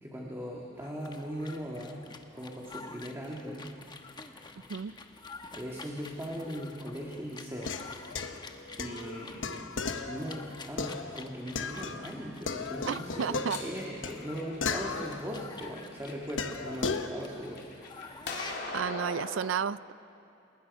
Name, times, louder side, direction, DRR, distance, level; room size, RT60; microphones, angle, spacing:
voice 1, 0.0-2.1 2.3-3.7 4.2-4.4 5.5-7.7 8.8-9.6 10.1-17.7, equal, 15° right, -3 dB, 1.8 m, -39 dB
sound 1, 0.7-18.9, left 3 dB, 25° left, 1.1 m, -49 dB
metal bowls water, 7.5-12.1 12.5-15.7 16.4-17.1, left 4 dB, 75° left, 1.1 m, -36 dB
voice 2, 12.9-13.6 18.7-19.9, right 7 dB, 85° right, 18 dB, 0.4 m, -32 dB
sound 2, 13.1-14.8 15.4-16.3 16.7-19.4, left 3 dB, 60° left, 2.9 m, -40 dB
28.5 x 19.5 x 5.3 m, 2.7 s
head